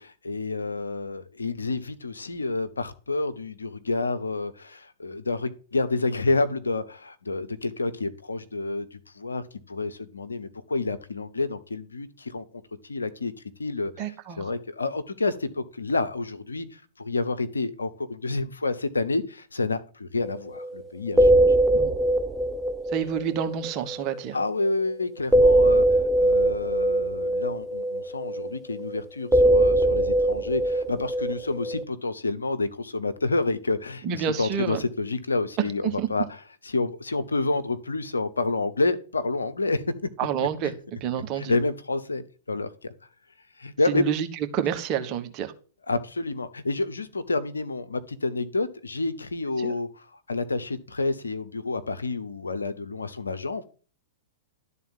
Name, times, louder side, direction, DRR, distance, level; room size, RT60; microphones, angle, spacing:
voice 1, 0.0-12.5 12.8-13.3 13.6-14.1 14.4-21.5 24.3-36.3 36.6-39.8 40.6-40.7 41.4-42.9 43.6-44.1 45.9-53.6, left 3 dB, 80° left, 1.0 m, -29 dB
voice 2, 14.0-14.5 21.7-21.9 22.9-24.4 34.0-34.8 36.0-36.1 40.2-41.5 43.9-44.3 44.5-45.5 49.6-49.7, right 8 dB, 35° right, 1.5 m, -29 dB
sound 1, 20.2-20.3 20.6-20.8 21.1-24.4 25.3-29.0 29.3-31.8, right 1 dB, 10° right, 0.9 m, -21 dB
12.0 x 4.1 x 7.4 m
figure-of-eight pair, 105°, 0 cm